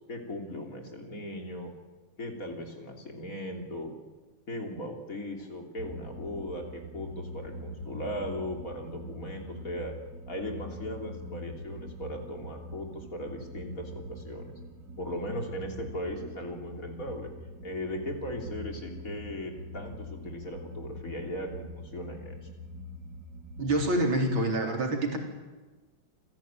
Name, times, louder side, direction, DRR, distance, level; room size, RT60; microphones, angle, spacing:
voice 1, 0.1-1.7 2.2-3.9 4.5-9.9 10.3-14.6 15.0-17.3 17.6-22.5, left 1 dB, 45° left, 3 dB, 3.7 m, -38 dB
sound 1, 5.8-23.9, equal, 55° right, 2.2 m, -43 dB
voice 2, 23.6-25.2, right 1 dB, 85° right, 2 dB, 4.7 m, -26 dB
27.5 x 16.5 x 9.2 m, 1.2 s
omnidirectional pair, 2.1 m